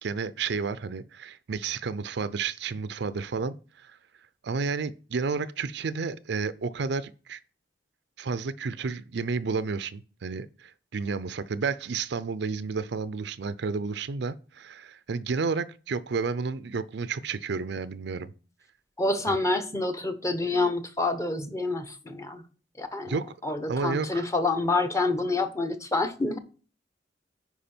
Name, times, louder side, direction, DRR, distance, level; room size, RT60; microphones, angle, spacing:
voice 1, 0.0-4.0 4.4-7.4 8.2-18.3 19.3-19.4 23.1-23.3 23.7-24.3, right 4 dB, 70° right, 0.5 m, -31 dB
voice 2, 19.0-22.4 22.8-23.1 23.4-26.4, left 2 dB, 15° left, 1.0 m, -27 dB
10.5 x 4.8 x 4.4 m
head